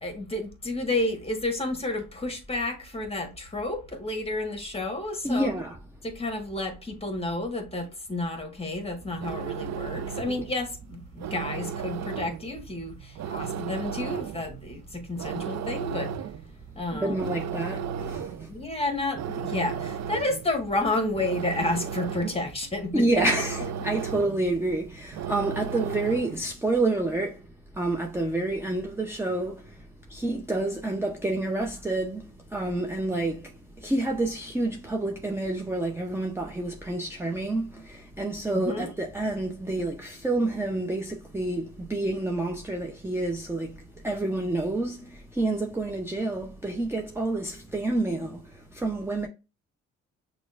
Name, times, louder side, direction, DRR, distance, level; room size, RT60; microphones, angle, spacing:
voice 1, 0.0-5.5 6.0-16.1 16.7-17.3 18.5-23.1 38.5-38.9, left 2 dB, 20° left, 1.4 m, -31 dB
voice 2, 5.2-5.7 17.0-18.5 22.9-27.4 27.8-29.7 30.1-32.2 32.5-33.5 33.8-43.7 44.0-48.4 48.7-49.3, right 2 dB, 10° right, 0.6 m, -28 dB
sound 1, 8.9-26.5, right 7 dB, 55° right, 0.5 m, -35 dB
6.0 x 2.4 x 2.4 m
supercardioid pair, 65°, 32 cm